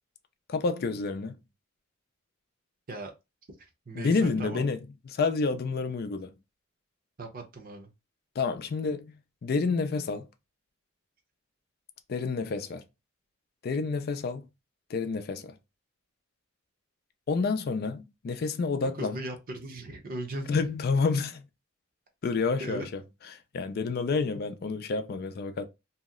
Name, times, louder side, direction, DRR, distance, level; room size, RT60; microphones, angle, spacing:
voice 1, 0.5-1.4 4.0-4.8 5.1-6.3 8.4-9.2 9.4-10.3 12.1-12.8 13.6-14.5 14.9-15.5 17.3-19.2 20.5-21.4 22.2-23.0 23.5-25.7, left 4 dB, 50° left, 0.4 m, -29 dB
voice 2, 3.6-4.6 7.2-7.9 19.0-20.6 22.6-22.9, right 2 dB, 45° right, 0.7 m, -38 dB
2.8 x 2.0 x 3.6 m
head